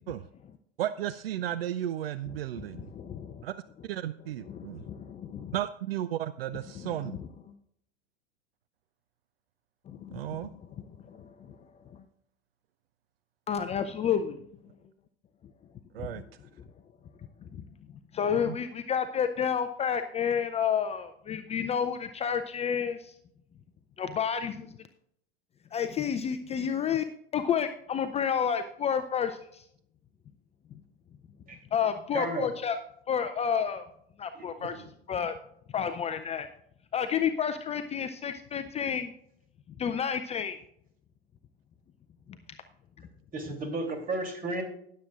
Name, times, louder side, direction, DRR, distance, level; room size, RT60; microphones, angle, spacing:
voice 1, 0.8-2.9 3.4-3.5 3.9-4.8 5.5-7.2 10.1-10.5 15.9-16.2 18.3-18.6, right 12 dB, 70° right, 14 dB, 0.5 m, -34 dB
voice 2, 2.3-3.4 4.4-5.5 6.7-7.3 9.9-11.6 11.9-12.0 13.5-14.5 16.0-16.2 17.5-17.6 18.1-23.1 24.0-24.7 25.7-27.0 27.3-29.6 31.7-32.7 33.1-33.8 34.2-34.7 35.1-35.3 35.7-36.5 36.9-39.1 39.8-40.6, left 7 dB, 20° left, 9 dB, 0.5 m, -30 dB
voice 3, 32.1-32.5 34.3-34.9 43.3-44.6, right 2 dB, 25° right, 4 dB, 3.0 m, -34 dB
19.5 x 7.6 x 2.4 m, 0.72 s
figure-of-eight pair, 90°, 31 cm